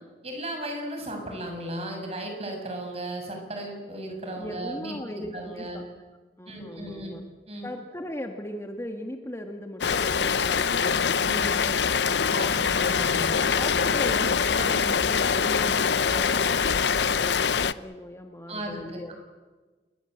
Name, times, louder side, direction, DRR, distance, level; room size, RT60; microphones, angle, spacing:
voice 1, 0.2-5.8 6.5-7.2 7.5-7.7 11.2-11.6 12.3-13.4 14.6-15.6 18.5-19.1, right 1 dB, 35° right, 3 dB, 7.2 m, -36 dB
voice 2, 4.4-5.8 6.4-7.2 7.6-12.6 13.1-19.1, left 1 dB, 15° left, 4 dB, 1.7 m, -38 dB
Rain, 9.8-17.7, left 6 dB, 75° left, 0.7 m, -24 dB
28.0 x 21.5 x 8.0 m, 1.3 s
head